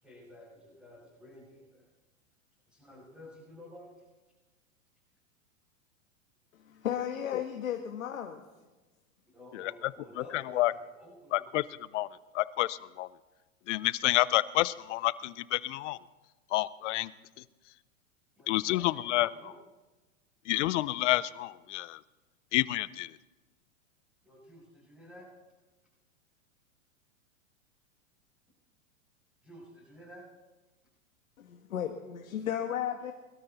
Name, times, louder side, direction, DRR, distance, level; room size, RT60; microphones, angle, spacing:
voice 1, 0.0-1.8 2.7-4.0 9.2-11.5 18.4-19.5 24.2-25.3 29.4-30.2, equal, ahead, -9 dB, 6.8 m, -51 dB
voice 2, 6.5-8.4 31.4-33.1, left 9 dB, 85° left, 4 dB, 1.5 m, -34 dB
voice 3, 10.3-10.7 11.3-11.6 11.9-12.1 12.3-13.1 13.7-16.0 16.5-17.1 18.5-19.3 20.5-22.0 22.5-23.1, left 17 dB, 60° left, 18 dB, 0.7 m, -29 dB
21.5 x 13.0 x 4.1 m, 1.2 s
hypercardioid pair, 125°, 40 cm